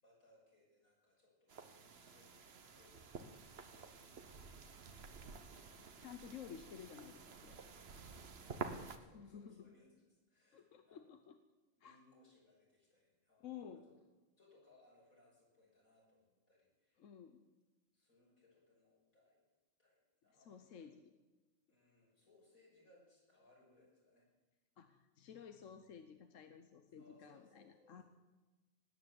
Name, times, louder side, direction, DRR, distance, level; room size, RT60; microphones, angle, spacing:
voice 1, 0.0-5.4 8.3-11.1 11.8-13.8 14.4-17.1 17.9-19.4 19.8-20.9 21.7-24.3 26.9-28.0, left 2 dB, 90° left, -3 dB, 6.5 m, -70 dB
sound 1, 1.5-9.0, right 5 dB, 50° right, 1.3 m, -51 dB
voice 2, 5.7-7.6 9.1-9.7 10.5-11.4 11.8-12.0 13.4-13.8 17.0-17.4 20.5-21.1 24.8-28.0, left 8 dB, 70° left, 8 dB, 1.2 m, -53 dB
18.5 x 9.4 x 7.7 m, 1.2 s
omnidirectional pair, 1.4 m